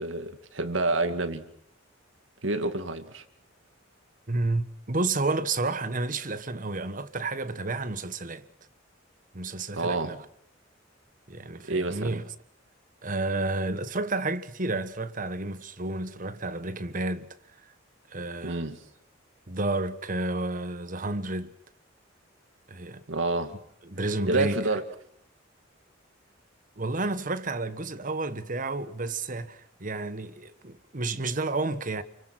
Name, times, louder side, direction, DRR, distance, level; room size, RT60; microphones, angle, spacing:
voice 1, 0.0-1.5 2.4-3.2 9.7-10.2 11.7-12.2 18.4-18.8 23.1-23.6 24.3-24.8, right 2 dB, 85° right, 2.2 m, -28 dB
voice 2, 4.3-8.4 9.3-10.2 11.3-12.2 13.0-17.3 18.1-18.7 19.5-21.5 22.7-23.0 23.9-24.6 26.8-32.0, right 2 dB, 45° right, 1.4 m, -31 dB
29.5 x 24.0 x 6.1 m
head